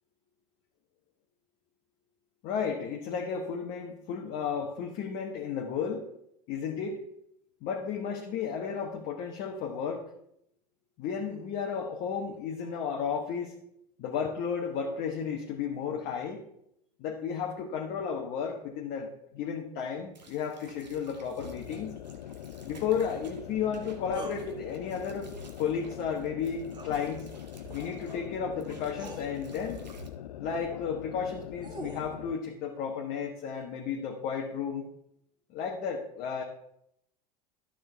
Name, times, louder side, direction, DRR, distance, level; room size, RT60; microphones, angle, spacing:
voice 1, 2.4-6.1 6.5-7.0 7.6-10.0 11.0-13.5 14.0-16.4 17.0-22.0 22.6-25.3 25.6-27.3 27.7-29.8 30.4-34.8 35.5-36.4, left 6 dB, 50° left, 0 dB, 1.2 m, -33 dB
sound 1, 20.1-28.3 28.6-30.1, right 3 dB, 85° right, 1.1 m, -52 dB
sound 2, 21.4-32.4, left 11 dB, 75° left, 0.5 m, -43 dB
sound 3, 24.1-24.4 26.7-27.0 28.3-28.4 28.9-29.3 31.2-32.1, right 4 dB, 20° right, 1.4 m, -44 dB
12.0 x 6.4 x 3.4 m, 0.77 s
figure-of-eight pair, 80°, 21 cm